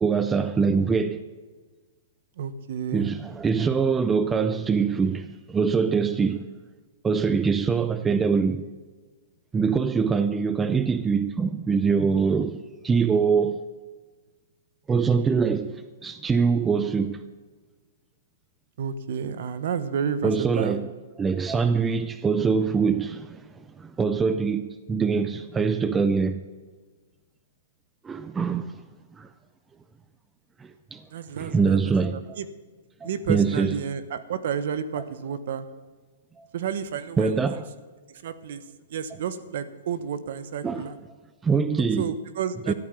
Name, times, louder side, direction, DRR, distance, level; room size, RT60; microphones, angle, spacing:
voice 1, 0.0-1.2 2.9-6.4 7.0-8.6 9.5-13.6 14.9-17.2 20.2-20.9 21.2-23.4 23.8-26.4 28.0-28.8 29.2-29.3 30.6-31.0 31.4-32.4 33.0-33.8 36.4-36.5 37.2-37.7 40.6-40.8 41.4-42.1 42.7-42.8, right 5 dB, 10° right, 0.4 m, -24 dB
voice 2, 2.4-3.1 18.8-20.8 31.1-32.5 33.0-35.7 36.5-37.6 38.1-38.6 38.9-41.0 42.0-42.7, right 7 dB, 55° right, 1.1 m, -31 dB
13.5 x 9.0 x 7.0 m
hypercardioid pair, 165°, 0 cm